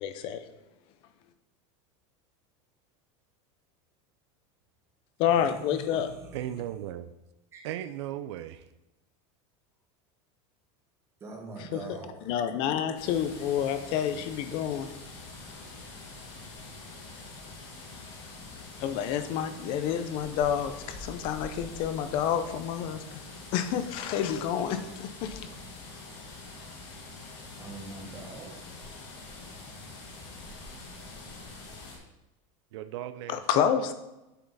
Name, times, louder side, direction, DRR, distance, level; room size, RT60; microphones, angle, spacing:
voice 1, 0.0-0.5 5.2-6.1 11.6-12.0 12.3-14.9 18.8-23.2 23.5-25.5 33.3-33.9, left 9 dB, 35° left, 10 dB, 0.5 m, -29 dB
voice 2, 5.2-6.6 7.5-7.6 11.2-12.1 27.6-28.5, right 3 dB, 15° right, 0 dB, 1.3 m, -43 dB
voice 3, 6.3-7.1 7.6-8.7 32.7-33.9, right 12 dB, 65° right, 11 dB, 0.4 m, -37 dB
sound 1, 12.9-32.0, left 3 dB, 55° left, 2.3 m, -45 dB
8.1 x 6.0 x 4.0 m, 0.99 s
supercardioid pair, 180°, 16 cm